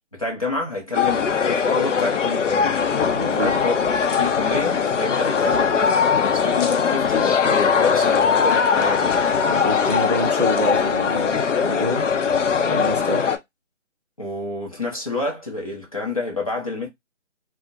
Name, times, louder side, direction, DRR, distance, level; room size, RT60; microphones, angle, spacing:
voice 1, 0.2-2.8 3.3-3.8 4.2-9.1 10.8-10.9 14.2-16.9, left 3 dB, 30° left, 0.6 m, -28 dB
sound 1, 0.9-13.4, left 6 dB, 80° left, 0.6 m, -20 dB
voice 2, 3.1-3.5 9.5-12.0 12.7-13.2, equal, 35° right, 0.4 m, -26 dB
2.4 x 2.1 x 2.6 m
figure-of-eight pair, 165°, 36 cm